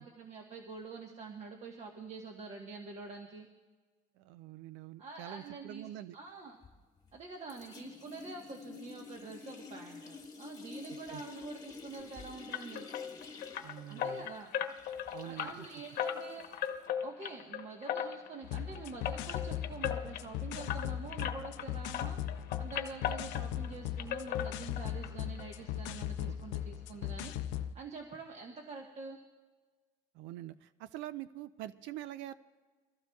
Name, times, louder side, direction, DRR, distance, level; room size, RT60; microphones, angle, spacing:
voice 1, 0.0-3.5 5.0-6.6 7.1-12.9 13.9-14.5 15.2-16.5 17.0-27.3 27.7-29.2, right 4 dB, 35° right, 1 dB, 1.2 m, -46 dB
voice 2, 4.2-6.2 10.9-11.2 13.6-14.3 15.1-15.7 26.2-26.3 30.1-32.3, right 13 dB, 80° right, 14 dB, 0.5 m, -45 dB
sound 1, 6.6-7.2 7.5-16.9, left 4 dB, 20° left, 1.5 m, -50 dB
sound 2, 12.5-21.7 21.9-23.7 24.0-25.1 25.4-25.5 25.9-26.0 26.3-26.4, left 9 dB, 55° left, 1.0 m, -38 dB
sound 3, 18.4-27.7, left 11 dB, 80° left, 0.6 m, -39 dB
24.0 x 15.0 x 2.3 m, 1.4 s
cardioid pair, 140°, 19 cm